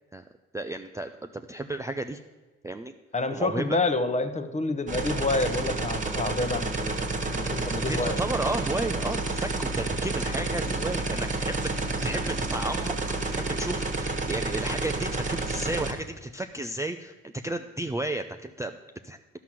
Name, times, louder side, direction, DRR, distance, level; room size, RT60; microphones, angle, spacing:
voice 1, 0.5-2.2 2.6-2.9 3.3-3.6 7.9-18.8 19.0-19.2, right 2 dB, 10° right, 6 dB, 0.4 m, -33 dB
voice 2, 3.1-8.2, left 2 dB, 25° left, 10 dB, 0.9 m, -28 dB
sound 1, 4.9-15.9, right 2 dB, 25° right, 1.4 m, -30 dB
11.5 x 5.9 x 7.5 m, 1.2 s
cardioid pair, 90°, 30 cm